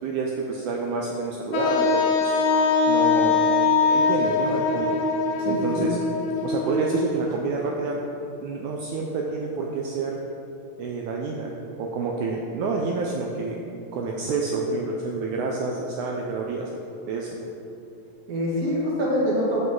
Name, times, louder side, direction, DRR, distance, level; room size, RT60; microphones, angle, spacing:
voice 1, 0.0-2.4 2.9-3.4 3.9-5.0 5.5-6.0 6.4-8.0 8.4-10.2 10.8-13.6 13.9-16.7 17.0-17.4, right 4 dB, 80° right, -1 dB, 1.8 m, -28 dB
Wind instrument woodwind instrument, 1.5-7.3, left 4 dB, 75° left, 1.9 m, -22 dB
voice 2, 5.4-5.9 18.3-19.6, equal, 35° right, -5 dB, 1.6 m, -25 dB
13.5 x 5.4 x 3.8 m, 2.8 s
omnidirectional pair, 4.1 m